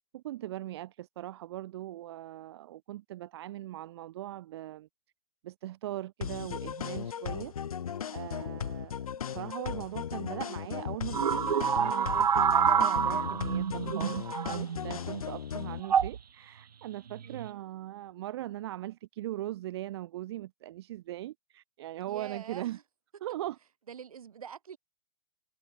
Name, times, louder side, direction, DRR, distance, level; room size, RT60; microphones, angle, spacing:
voice 1, 0.1-4.9 5.4-7.5 8.1-11.4 11.7-22.8 23.2-23.6, right 14 dB, 40° right, 0.8 m, -40 dB
sound 1, 6.2-15.8, left 8 dB, 60° left, 0.9 m, -37 dB
sound 2, 11.1-15.0 15.8-16.2 17.1-17.5, right 7 dB, 75° right, 0.4 m, -27 dB
voice 2, 17.2-17.6 22.0-22.8 23.9-24.8, right 7 dB, 60° right, 4.4 m, -45 dB
figure-of-eight pair, 115°, 21 cm